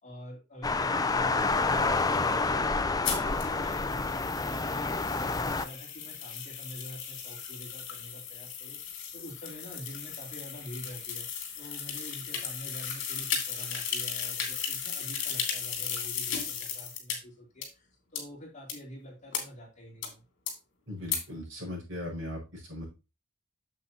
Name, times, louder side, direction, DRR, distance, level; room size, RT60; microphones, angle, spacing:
voice 1, 0.0-2.9 3.2-8.8 9.1-11.3 11.6-20.2, equal, 35° left, -1 dB, 2.9 m, -46 dB
sound 1, 0.6-5.6, left 3 dB, 20° left, 0.5 m, -28 dB
sound 2, 3.0-17.2 17.6-17.7 18.2-18.3 18.7-18.8 19.3-19.4 20.0-20.1 20.5-20.6 21.1-21.2, left 7 dB, 60° left, 2.7 m, -36 dB
voice 2, 20.9-22.9, left 1 dB, 65° right, -2 dB, 5.2 m, -38 dB
8.5 x 7.3 x 2.8 m, 0.28 s
head